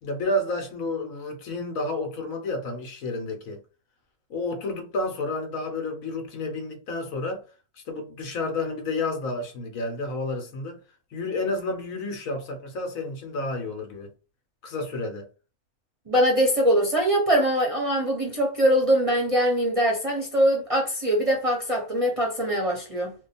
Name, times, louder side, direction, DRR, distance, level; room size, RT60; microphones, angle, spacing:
voice 1, 0.0-3.6 4.3-7.5 7.8-10.8 11.1-14.1 14.6-15.3, left 2 dB, 75° left, 1.3 m, -30 dB
voice 2, 16.1-23.1, equal, 35° right, 0.6 m, -22 dB
2.8 x 2.3 x 4.1 m
omnidirectional pair, 1.5 m